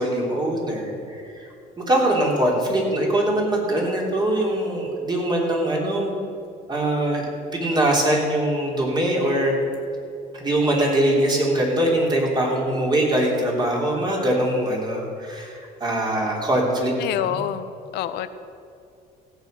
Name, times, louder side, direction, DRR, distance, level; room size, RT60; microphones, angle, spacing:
voice 1, 0.0-1.4 1.8-6.1 6.7-9.5 10.3-17.3, right 1 dB, 25° right, -2 dB, 3.4 m, -22 dB
voice 2, 17.0-17.7 17.9-18.3, left 12 dB, 80° left, 12 dB, 0.7 m, -26 dB
16.0 x 7.6 x 6.6 m, 2.5 s
cardioid pair, 110°, 17 cm